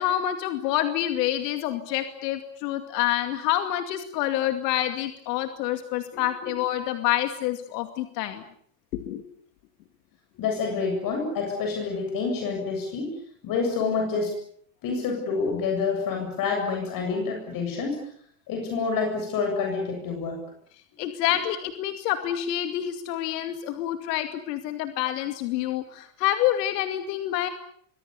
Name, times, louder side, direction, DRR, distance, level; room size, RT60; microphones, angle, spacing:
voice 1, 0.0-8.4 8.9-9.2 21.0-27.5, left 12 dB, 85° left, 7 dB, 2.5 m, -27 dB
voice 2, 10.4-13.2 13.4-14.3 14.8-18.0 18.5-20.4, left 4 dB, 45° left, 3 dB, 7.8 m, -27 dB
27.0 x 24.0 x 7.0 m, 0.63 s
supercardioid pair, 140°, 47 cm